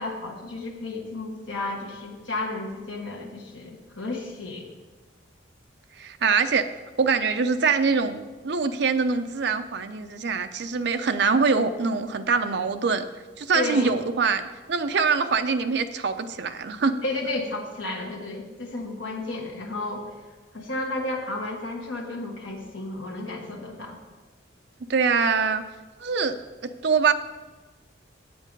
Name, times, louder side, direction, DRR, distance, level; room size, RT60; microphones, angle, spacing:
voice 1, 0.0-4.7 13.5-14.0 17.0-20.1 20.5-24.0, left 2 dB, 70° left, -1 dB, 1.4 m, -32 dB
voice 2, 6.0-6.6 7.0-13.0 13.4-14.4 14.7-16.9 24.9-25.6 26.0-27.1, right 5 dB, 60° right, 8 dB, 0.5 m, -24 dB
8.2 x 7.7 x 5.2 m, 1.3 s
head